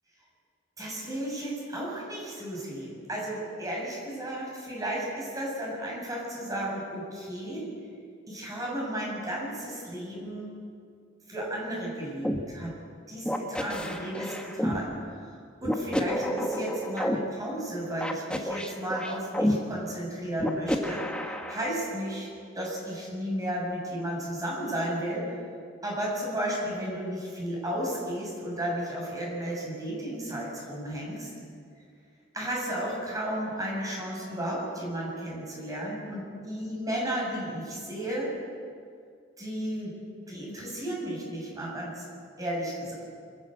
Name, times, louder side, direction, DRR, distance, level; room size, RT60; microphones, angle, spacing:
voice 1, 0.8-7.7 8.3-10.5 11.3-12.7 13.1-22.3 22.5-25.2 25.8-31.3 32.3-38.3 39.4-39.9 40.3-42.1 42.4-42.9, right 1 dB, 20° right, -3 dB, 7.4 m, -33 dB
sound 1, 12.2-12.4 13.3-14.8 15.6-17.2 18.0-19.5 20.4-21.7, equal, 5° left, 1.4 m, -29 dB
25.5 x 14.5 x 7.9 m, 2.2 s
head